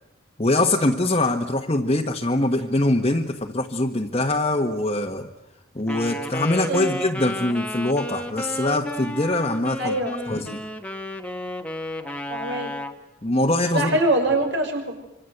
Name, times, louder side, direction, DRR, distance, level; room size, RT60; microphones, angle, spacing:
voice 1, 0.4-5.3 5.7-10.0 10.3-10.6 13.2-14.0, left 2 dB, 30° left, -1 dB, 1.4 m, -23 dB
Wind instrument woodwind instrument, 5.9-13.0, left 1 dB, 5° left, 1.4 m, -32 dB
voice 2, 6.7-7.0 9.8-10.4 12.3-12.7 13.7-15.0, right 1 dB, 70° right, 4 dB, 5.9 m, -24 dB
26.5 x 25.5 x 8.0 m, 0.89 s
head